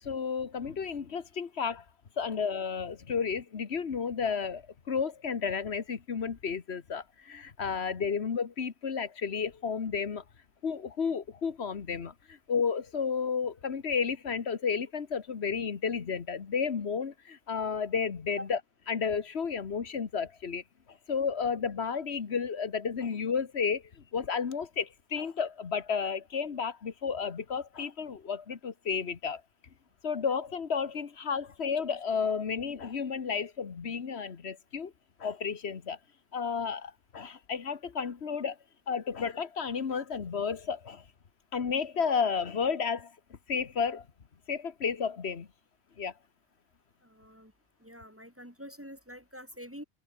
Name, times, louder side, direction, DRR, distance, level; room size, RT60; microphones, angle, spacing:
voice 1, 0.0-1.8 2.2-10.2 10.6-18.6 18.9-29.4 30.0-34.9 35.2-36.0 36.3-38.6 38.9-41.0 41.5-44.1 44.5-45.5 46.0-46.1, left 6 dB, 85° left, 1.6 m, -32 dB
voice 2, 47.0-47.5 47.8-49.8, equal, 10° right, 3.4 m, -46 dB
omnidirectional pair, 1.1 m